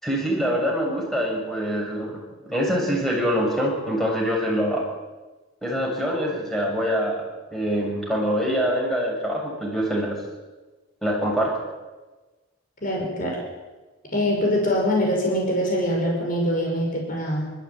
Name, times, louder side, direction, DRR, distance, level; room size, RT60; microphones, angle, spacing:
voice 1, 0.0-2.1 2.4-4.8 5.6-7.2 7.5-10.2 11.0-11.5, equal, ahead, -2 dB, 6.9 m, -24 dB
voice 2, 12.8-13.4 14.1-17.5, equal, 40° left, -1 dB, 6.3 m, -23 dB
29.0 x 14.5 x 9.1 m, 1.2 s
head